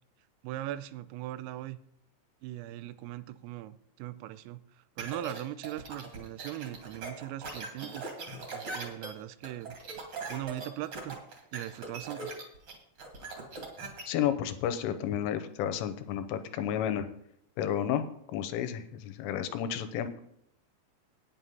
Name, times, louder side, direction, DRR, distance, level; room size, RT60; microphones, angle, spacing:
voice 1, 0.4-1.8 2.4-8.0 8.5-9.8 10.3-11.2 11.5-12.4, right 14 dB, 90° right, 14 dB, 3.3 m, -40 dB
sound 1, 5.0-14.0, right 3 dB, 45° right, 1.7 m, -40 dB
voice 2, 14.1-17.1 17.6-18.1 18.3-20.2, left 9 dB, 85° left, 10 dB, 3.3 m, -31 dB
9.3 x 8.9 x 5.5 m, 0.73 s
omnidirectional pair, 5.8 m